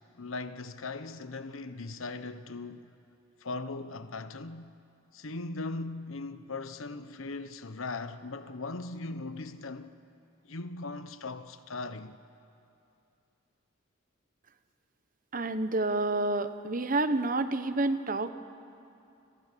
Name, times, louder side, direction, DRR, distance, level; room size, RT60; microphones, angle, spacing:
voice 1, 0.1-2.9 3.4-4.7 5.1-9.9 10.4-12.2, left 3 dB, 75° left, 1.1 m, -39 dB
voice 2, 15.3-18.3, right 2 dB, 40° right, 1.0 m, -29 dB
30.0 x 26.5 x 6.9 m
head